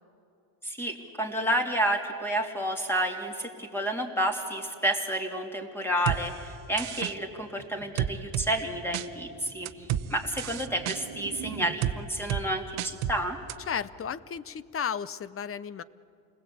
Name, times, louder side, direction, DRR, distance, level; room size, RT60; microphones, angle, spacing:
voice 1, 0.6-13.4, right 1 dB, 5° left, 3 dB, 2.8 m, -30 dB
sound 1, 6.1-6.2 6.8-7.1 8.0-8.5 8.9-9.1 9.7-10.0 10.4-11.0 11.8-12.0 12.3-12.4 12.8-13.2 13.5-13.6, right 12 dB, 70° right, 1.0 m, -29 dB
sound 2, 6.5-11.8, right 8 dB, 50° right, 1.5 m, -46 dB
voice 2, 13.7-15.8, left 7 dB, 30° left, 17 dB, 0.6 m, -34 dB
29.0 x 20.5 x 8.6 m, 2.8 s
cardioid pair, 150°, 49 cm